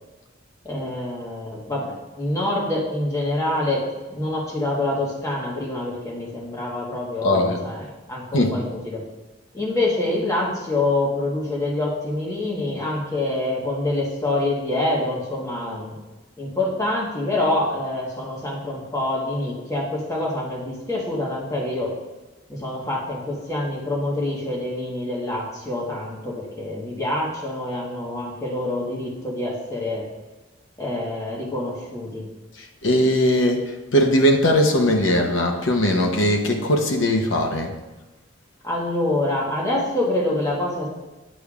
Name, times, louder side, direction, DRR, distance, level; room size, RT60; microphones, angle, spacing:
voice 1, 0.6-9.0 9.5-16.0 16.4-21.9 22.5-30.1 30.8-32.3 38.6-40.9, left 2 dB, 15° left, -4 dB, 1.3 m, -26 dB
voice 2, 7.2-7.6 8.3-8.5 32.8-33.6 33.9-37.7, left 1 dB, 75° left, 3 dB, 0.9 m, -19 dB
8.4 x 6.8 x 2.4 m, 1.1 s
head